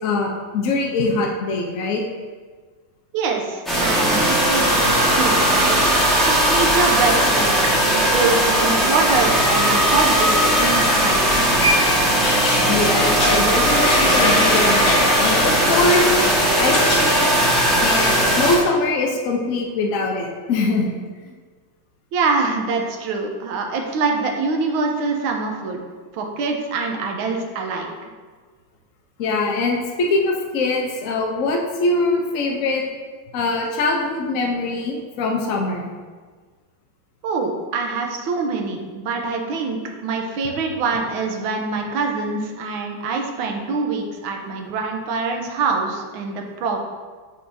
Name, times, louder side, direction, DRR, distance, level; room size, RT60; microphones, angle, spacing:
voice 1, 0.0-2.0 12.7-16.1 16.6-17.4 17.8-21.0 21.2-21.3 29.2-32.8 33.3-35.9, left 3 dB, 70° left, 0 dB, 0.7 m, -22 dB
voice 2, 3.1-5.8 6.2-7.5 8.1-11.7 22.1-25.8 26.1-27.9 37.2-46.8, right 4 dB, 90° right, 2 dB, 1.5 m, -24 dB
sound 1, 3.7-18.6, right 1 dB, ahead, 1.0 m, -18 dB
sound 2, 10.6-17.1 17.3-18.6, left 1 dB, 45° left, 1.0 m, -25 dB
9.2 x 3.9 x 2.6 m, 1.5 s
omnidirectional pair, 2.2 m